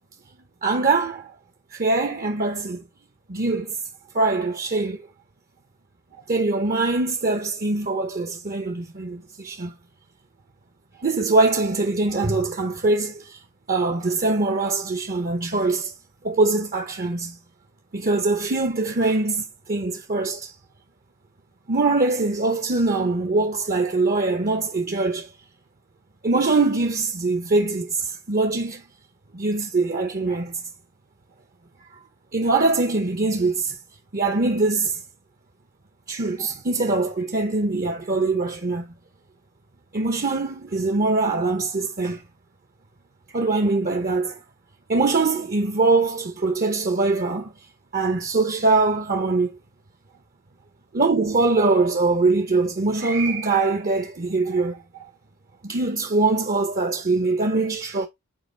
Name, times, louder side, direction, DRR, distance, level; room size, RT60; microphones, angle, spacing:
voice 1, 0.6-1.3 1.7-2.8 3.3-3.7 4.1-5.1 6.3-9.7 11.0-13.4 13.7-15.9 16.2-17.4 17.9-20.5 21.7-25.3 26.2-28.8 29.3-30.5 31.8-31.9 32.3-33.8 34.1-35.0 36.1-38.9 39.9-42.2 43.3-44.4 44.9-47.5 47.9-49.5 50.9-55.1 55.6-58.1, right 3 dB, 40° right, 0.8 m, -23 dB
7.7 x 4.8 x 3.3 m
head